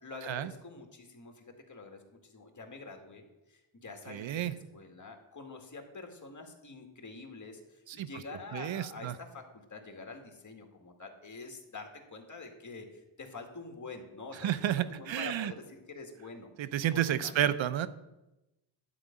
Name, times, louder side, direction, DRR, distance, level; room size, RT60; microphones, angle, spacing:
voice 1, 0.0-14.5 14.8-16.5 16.9-17.5, left 3 dB, 40° left, 3 dB, 2.1 m, -47 dB
voice 2, 4.1-4.5 7.9-8.1 8.5-9.1 14.4-15.5 16.6-17.9, right 11 dB, 80° right, 14 dB, 0.7 m, -31 dB
11.5 x 5.0 x 8.6 m, 0.98 s
cardioid pair, 85°, 45 cm